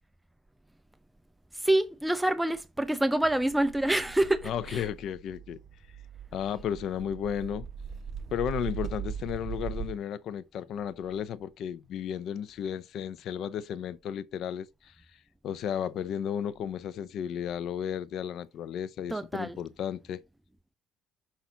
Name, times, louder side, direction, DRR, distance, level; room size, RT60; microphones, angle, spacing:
voice 1, 1.5-4.9 19.1-19.6, right 1 dB, 5° right, 0.4 m, -27 dB
sound 1, 3.3-10.0, right 8 dB, 45° right, 1.0 m, -40 dB
voice 2, 4.4-5.6 6.3-7.7 8.3-14.9 15.4-20.2, left 9 dB, 60° left, 0.6 m, -34 dB
5.8 x 5.7 x 3.8 m
cardioid pair, 100°, 0 cm